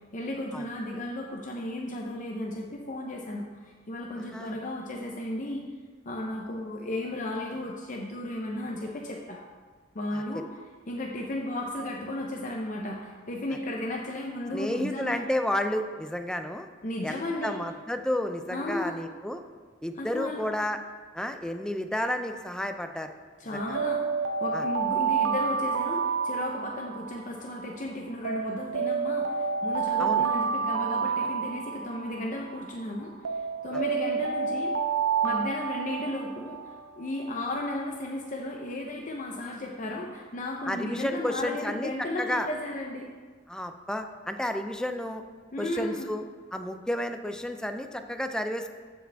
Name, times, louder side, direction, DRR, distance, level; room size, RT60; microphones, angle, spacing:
voice 1, 0.1-5.6 6.0-9.4 9.9-10.5 10.9-15.2 16.8-17.6 18.5-19.0 20.0-20.5 23.4-24.0 24.4-34.7 35.2-43.1 45.5-46.1, left 1 dB, 45° left, -1 dB, 0.7 m, -34 dB
voice 2, 4.2-4.6 10.1-10.2 14.5-16.7 17.0-19.4 19.8-20.8 21.1-23.1 23.5-23.8 24.5-24.6 30.0-30.3 40.7-42.5 43.5-45.2 45.6-46.2 46.5-48.7, left 1 dB, 5° left, 7 dB, 0.4 m, -31 dB
Alarm, 23.6-27.7 28.3-32.7 33.3-37.1, right 6 dB, 90° right, 0.5 m, -29 dB
14.5 x 4.9 x 3.5 m, 1.5 s
head